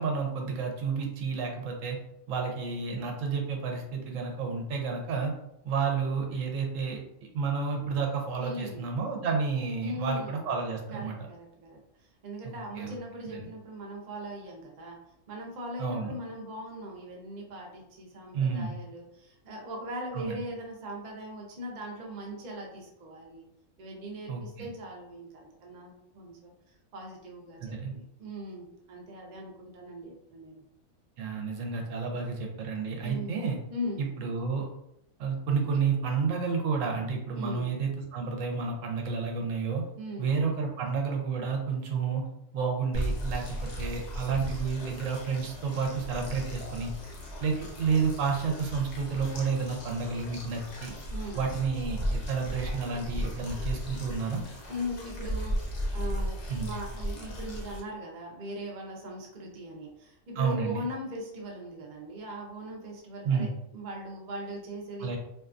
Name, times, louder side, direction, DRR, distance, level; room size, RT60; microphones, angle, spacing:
voice 1, 0.0-2.0 2.3-5.3 5.6-7.0 7.3-11.2 12.4-13.0 13.2-13.5 15.8-16.1 18.3-18.7 20.1-20.4 24.3-24.7 27.6-27.9 31.2-33.6 34.0-34.7 35.2-39.8 40.2-42.2 42.5-46.9 47.4-50.9 51.3-54.4 56.5-56.7 60.3-60.9 63.2-63.5 65.0-65.2, right 5 dB, 75° right, 1 dB, 0.9 m, -30 dB
voice 2, 8.4-8.9 9.8-10.4 10.9-15.0 15.3-23.5 23.8-30.6 32.8-33.3 33.7-34.0 37.3-37.7 40.0-40.3 51.1-51.4 54.7-65.2, equal, 55° right, -1 dB, 0.5 m, -40 dB
sound 1, 42.9-57.8, equal, 60° left, 0.9 m, -36 dB
2.6 x 2.3 x 2.4 m, 0.79 s
omnidirectional pair, 1.4 m